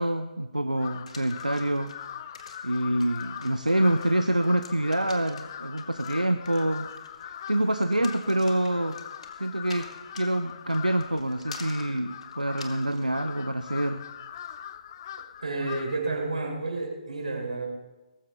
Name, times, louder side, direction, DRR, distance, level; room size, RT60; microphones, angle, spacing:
voice 1, 0.0-1.9 2.6-6.9 7.2-9.0 9.4-9.9 10.1-14.0, right 1 dB, 85° right, 10 dB, 0.7 m, -26 dB
Crow, 0.7-16.1, left 9 dB, 35° left, 0.5 m, -41 dB
sound 1, 1.1-13.1, left 4 dB, 55° left, 2.0 m, -48 dB
voice 2, 15.4-17.7, right 3 dB, 65° right, 0 dB, 4.5 m, -30 dB
19.0 x 15.0 x 3.9 m, 1.1 s
figure-of-eight pair, 135°, 4 cm